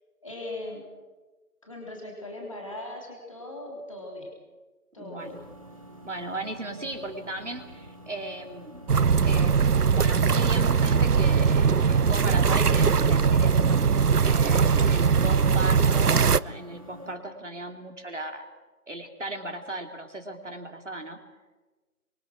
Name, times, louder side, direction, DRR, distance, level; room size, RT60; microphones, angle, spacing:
voice 1, 0.2-0.8 1.6-4.3 4.9-5.3, left 1 dB, 20° left, -1 dB, 3.5 m, -39 dB
voice 2, 5.0-5.4 6.0-8.9 9.2-13.8 14.2-18.4 18.9-21.2, right 1 dB, 50° right, 5 dB, 3.1 m, -37 dB
sound 1, 5.2-17.2, right 1 dB, 20° right, 1.8 m, -47 dB
sound 2, 8.9-16.4, right 6 dB, 85° right, 0.8 m, -21 dB
25.5 x 24.5 x 6.2 m, 1.2 s
figure-of-eight pair, 175°, 45 cm